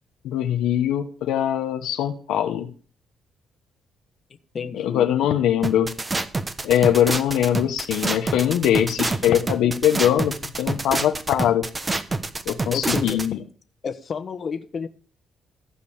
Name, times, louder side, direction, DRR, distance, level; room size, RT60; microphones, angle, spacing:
voice 1, 0.2-2.7 4.7-5.9 6.6-11.7 12.5-13.4, left 10 dB, 85° left, 6 dB, 1.1 m, -22 dB
voice 2, 4.5-5.0 12.7-13.2 13.8-14.9, left 6 dB, 45° left, 7 dB, 1.3 m, -30 dB
sound 1, 5.6-13.3, right 3 dB, 25° right, 1.2 m, -27 dB
15.0 x 5.3 x 8.7 m, 0.40 s
cardioid pair, 90°, 0 cm